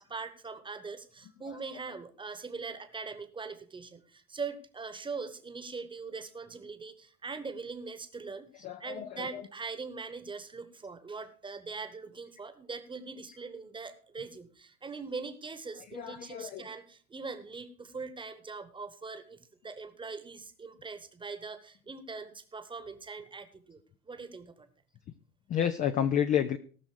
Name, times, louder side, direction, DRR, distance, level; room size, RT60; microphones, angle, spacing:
voice 1, 0.1-19.4 19.6-24.7, right 4 dB, 10° right, 11 dB, 1.2 m, -42 dB
voice 2, 8.6-9.4 15.9-16.6 25.5-26.6, left 9 dB, 20° left, 9 dB, 0.4 m, -30 dB
18.0 x 6.2 x 4.7 m, 0.42 s
hypercardioid pair, 95°, 44 cm